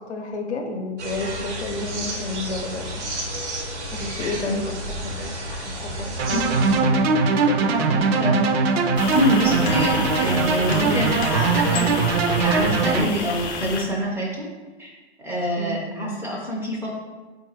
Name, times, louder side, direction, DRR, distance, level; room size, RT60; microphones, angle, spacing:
voice 1, 0.1-3.0 3.9-4.7 5.0-6.7 7.5-8.1 15.6-15.8, left 3 dB, 75° left, 3 dB, 0.7 m, -31 dB
sound 1, 1.0-6.8, right 1 dB, 85° right, 0.9 m, -31 dB
sound 2, 6.2-13.0, right 4 dB, 65° right, 0.5 m, -21 dB
sound 3, 9.0-13.8, left 4 dB, 40° left, 0.7 m, -30 dB
voice 2, 9.1-12.0 12.3-14.5 14.8-14.9 15.2-16.9, equal, 5° right, -3 dB, 0.4 m, -25 dB
3.7 x 2.5 x 4.1 m, 1.3 s
hypercardioid pair, 110°, 34 cm